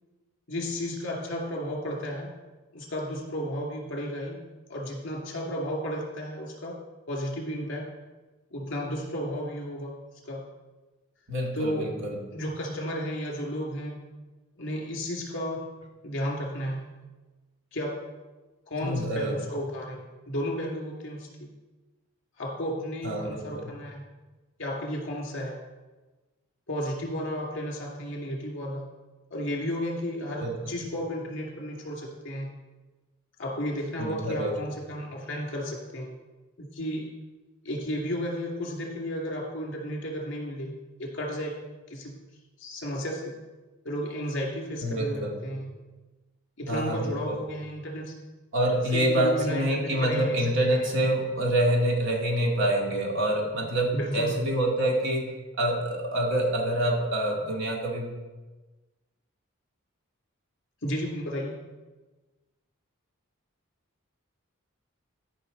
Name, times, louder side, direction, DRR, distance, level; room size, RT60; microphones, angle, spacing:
voice 1, 0.5-2.3 2.7-4.4 4.7-6.8 7.1-7.9 8.5-10.0 10.3-10.5 11.5-12.0 12.3-14.0 14.6-15.7 16.0-17.0 17.7-18.0 18.7-21.5 22.4-24.0 24.6-25.6 26.7-29.0 29.3-32.5 33.4-36.1 36.6-37.1 37.6-41.5 41.9-42.2 42.6-43.4 43.8-45.8 46.6-48.2 48.9-50.4 50.7-50.9 53.9-54.4 60.8-61.6, equal, 55° left, -1 dB, 2.4 m, -33 dB
voice 2, 11.3-12.2 18.8-19.3 23.0-23.7 30.4-30.6 34.0-34.5 44.8-45.4 46.7-47.4 48.5-55.3 55.6-58.1, right 1 dB, 60° right, -1 dB, 2.0 m, -26 dB
14.0 x 5.7 x 4.0 m, 1.2 s
head